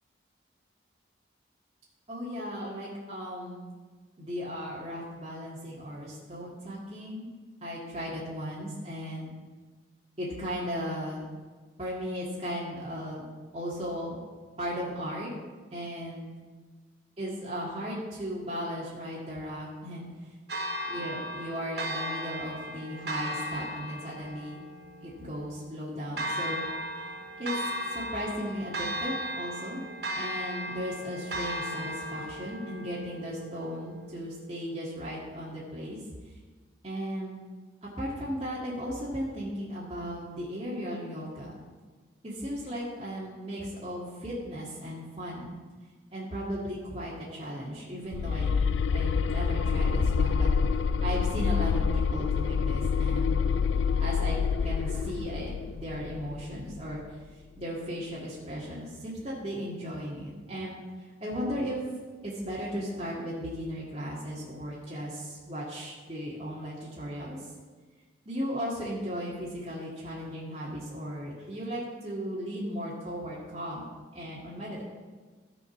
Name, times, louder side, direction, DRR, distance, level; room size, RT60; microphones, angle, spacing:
voice 1, 2.1-3.7 4.2-7.3 7.6-9.3 10.2-11.3 11.8-13.3 13.5-14.2 14.6-15.3 15.7-16.3 17.2-20.1 20.9-24.6 25.0-26.6 27.4-27.5 27.9-29.8 30.2-36.0 36.8-37.4 37.8-41.6 42.2-45.6 46.1-48.5 48.9-50.5 51.0-53.4 54.0-54.4 54.6-57.0 57.6-60.8 61.2-61.8 62.2-67.4 68.3-73.9 74.1-74.8, equal, 30° right, -7 dB, 2.0 m, -36 dB
Church bell, 20.5-34.5, equal, 55° right, 0.9 m, -36 dB
sound 1, 48.1-57.0, left 5 dB, 80° left, 0.3 m, -27 dB
14.0 x 5.3 x 5.9 m, 1.4 s
head